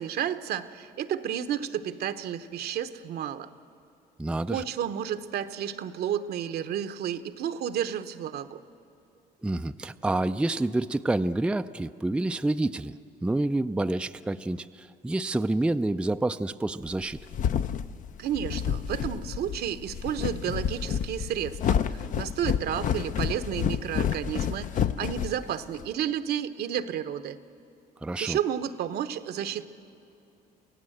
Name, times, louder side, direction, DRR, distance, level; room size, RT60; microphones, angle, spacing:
voice 1, 0.0-3.5 4.5-8.6 18.2-27.4 28.2-29.7, right 9 dB, 70° right, 10 dB, 1.0 m, -31 dB
voice 2, 4.2-4.6 9.4-12.9 13.2-17.2 28.0-28.4, right 2 dB, 5° right, 10 dB, 0.4 m, -28 dB
sound 1, 16.9-25.9, left 8 dB, 50° left, 0.6 m, -29 dB
27.5 x 16.0 x 7.9 m, 2.9 s
cardioid pair, 110°, 17 cm